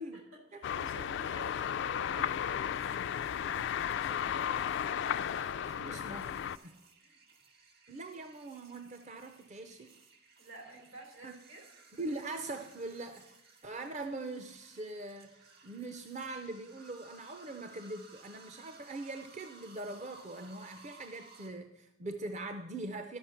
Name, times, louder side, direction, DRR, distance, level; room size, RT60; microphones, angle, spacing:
voice 1, 0.0-2.8 3.8-5.9 7.0-7.2 10.4-11.7, right 2 dB, 80° right, 1 dB, 3.5 m, -52 dB
sound 1, 0.6-6.6, left 9 dB, 60° left, 0.3 m, -34 dB
voice 2, 0.7-1.1 5.8-6.8 7.9-10.0 11.2-11.4 12.0-13.4 13.6-15.3 15.6-23.2, right 2 dB, 35° right, 7 dB, 0.5 m, -42 dB
sound 2, 2.8-21.5, right 3 dB, 55° right, 1.4 m, -59 dB
12.5 x 6.1 x 5.8 m, 0.88 s
head